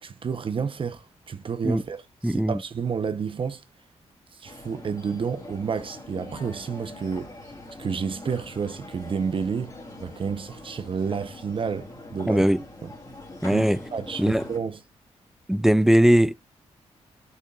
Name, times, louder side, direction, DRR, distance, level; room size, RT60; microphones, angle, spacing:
voice 1, 0.0-3.6 4.3-7.3 7.8-12.4 12.8-12.9 13.5-14.8, right 6 dB, 50° right, 0.8 m, -30 dB
voice 2, 2.2-2.6 12.3-12.6 13.4-13.8 14.2-14.4 15.5-16.3, right 1 dB, 5° right, 0.4 m, -19 dB
sound 1, 4.4-14.6, left 2 dB, 30° left, 3.1 m, -43 dB
12.0 x 6.8 x 2.4 m
cardioid pair, 70°, 12 cm